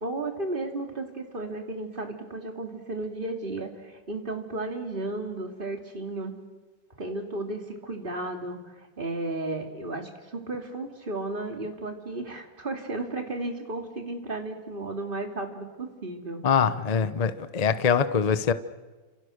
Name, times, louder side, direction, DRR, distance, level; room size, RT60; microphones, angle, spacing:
voice 1, 0.0-6.4 7.0-16.4, right 2 dB, 25° right, 2.9 m, -34 dB
voice 2, 16.4-18.5, left 6 dB, 40° left, 0.5 m, -23 dB
30.0 x 28.0 x 6.5 m
omnidirectional pair, 2.1 m